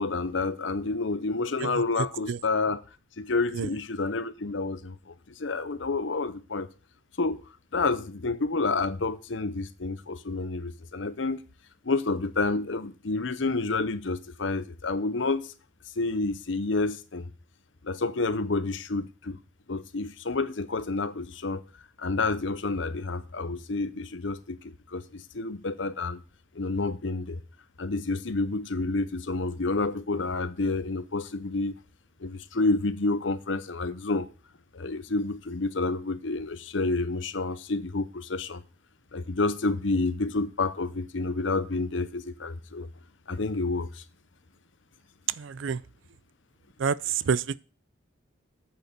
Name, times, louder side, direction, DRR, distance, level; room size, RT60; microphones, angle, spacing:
voice 1, 0.0-2.8 3.2-6.7 7.2-7.4 7.7-11.4 11.8-15.5 16.0-17.3 17.8-19.4 19.7-21.6 22.0-26.2 26.5-27.4 27.8-31.8 32.2-34.3 34.7-38.6 39.1-42.9 43.3-44.0, left 3 dB, 75° left, 0.9 m, -29 dB
voice 2, 45.4-45.8 46.8-47.4, right 6 dB, 80° right, 0.5 m, -28 dB
9.2 x 6.7 x 6.7 m
head